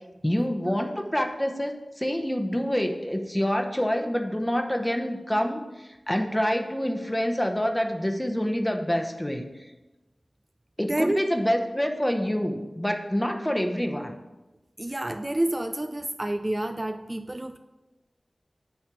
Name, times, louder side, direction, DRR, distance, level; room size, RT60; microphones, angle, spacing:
voice 1, 0.2-9.4 10.8-14.2, equal, 15° left, 4 dB, 0.9 m, -27 dB
voice 2, 10.9-11.3 14.8-17.6, right 1 dB, 30° right, 7 dB, 0.4 m, -29 dB
8.7 x 3.3 x 6.1 m, 1.1 s
wide cardioid pair, 45°, 0 cm